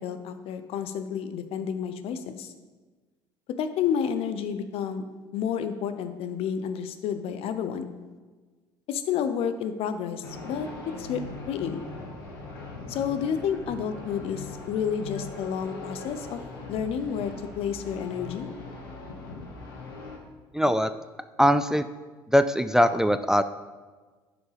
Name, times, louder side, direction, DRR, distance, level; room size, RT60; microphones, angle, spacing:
voice 1, 0.0-2.5 3.5-5.1 5.3-7.9 8.9-11.8 12.9-16.4 16.7-18.5, left 7 dB, 60° left, 10 dB, 0.6 m, -30 dB
sound 1, 10.2-20.2, left 3 dB, 85° left, 1.3 m, -40 dB
voice 2, 20.5-20.9 21.4-21.9 22.3-23.4, equal, 5° right, 11 dB, 0.3 m, -21 dB
11.0 x 4.9 x 3.4 m, 1.3 s
hypercardioid pair, 65°, 11 cm